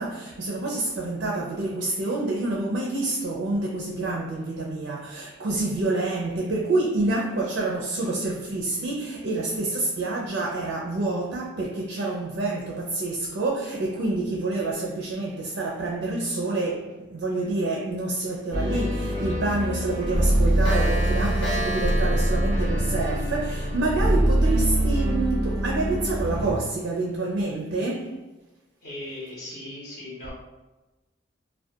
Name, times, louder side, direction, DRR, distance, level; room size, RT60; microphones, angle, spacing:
voice 1, 0.0-28.2, right 2 dB, 80° right, 0.4 m, -28 dB
sound 1, 18.5-26.5, right 1 dB, 25° right, 0.5 m, -24 dB
Clock, 18.7-18.8 19.1-19.3 19.6-19.7 20.0-24.0, right 1 dB, 80° left, 0.9 m, -33 dB
voice 2, 28.8-30.3, left 1 dB, 50° left, 0.6 m, -38 dB
2.2 x 2.2 x 2.7 m
head